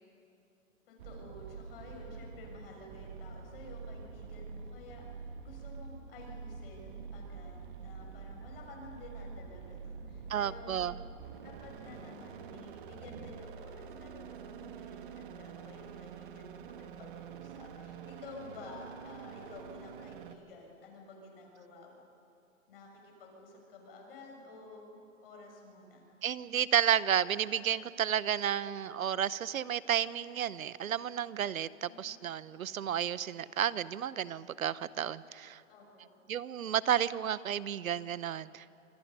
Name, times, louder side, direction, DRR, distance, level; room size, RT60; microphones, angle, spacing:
voice 1, 0.9-10.9 11.4-21.9 22.7-26.1 31.9-32.2 35.7-36.1, left 3 dB, 45° left, 0 dB, 6.6 m, -51 dB
sound 1, 1.0-20.3, right 6 dB, 40° right, 1.4 m, -46 dB
voice 2, 10.3-10.9 26.2-35.6 36.3-38.7, right 9 dB, 85° right, 18 dB, 0.9 m, -32 dB
27.5 x 24.5 x 5.5 m, 2.7 s
hypercardioid pair, 160°, 40 cm